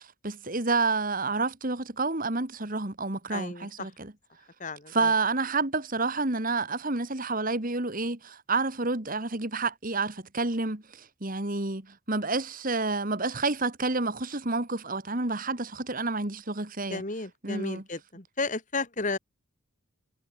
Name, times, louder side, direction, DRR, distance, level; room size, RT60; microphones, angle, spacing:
voice 1, 0.2-4.1 4.9-17.0 17.4-17.8, right 3 dB, 40° right, 2.1 m, -29 dB
voice 2, 3.3-3.9 4.6-5.1 16.9-19.2, left 3 dB, 35° left, 2.3 m, -33 dB
head